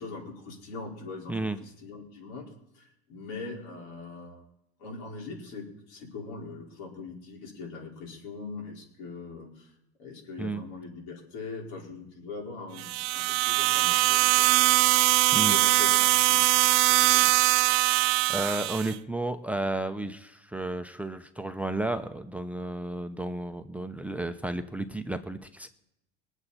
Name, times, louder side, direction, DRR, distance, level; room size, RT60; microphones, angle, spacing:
voice 1, 0.0-1.3 1.6-2.5 2.7-4.4 4.8-9.7 10.0-14.8 15.5-17.3, left 4 dB, 75° left, -1 dB, 4.7 m, -41 dB
sound 1, 12.8-18.9, right 19 dB, 60° right, 0.7 m, -22 dB
voice 2, 18.3-25.7, right 2 dB, 5° right, 10 dB, 0.7 m, -32 dB
23.0 x 8.0 x 4.3 m, 0.82 s
supercardioid pair, 115°, 30 cm